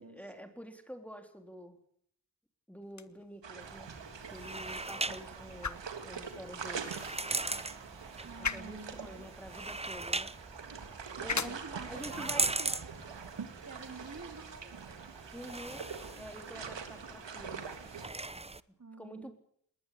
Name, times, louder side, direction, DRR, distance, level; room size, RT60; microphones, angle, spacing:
voice 1, 0.0-1.8 2.7-3.9 4.3-6.8 8.4-10.5 11.2-11.6 11.9-12.5 15.3-17.7 19.0-19.3, equal, 5° left, 6 dB, 3.6 m, -48 dB
sound 1, 2.8-14.9, left 5 dB, 40° left, 1.4 m, -44 dB
sound 2, 3.4-18.1, right 6 dB, 85° right, 3.3 m, -45 dB
sound 3, 3.6-18.6, right 2 dB, 15° right, 0.9 m, -40 dB
voice 2, 8.2-9.2 11.4-12.9 13.7-14.7 18.8-19.3, right 4 dB, 40° right, 7 dB, 3.4 m, -47 dB
20.5 x 20.0 x 8.4 m, 0.65 s
cardioid pair, 60°, 43 cm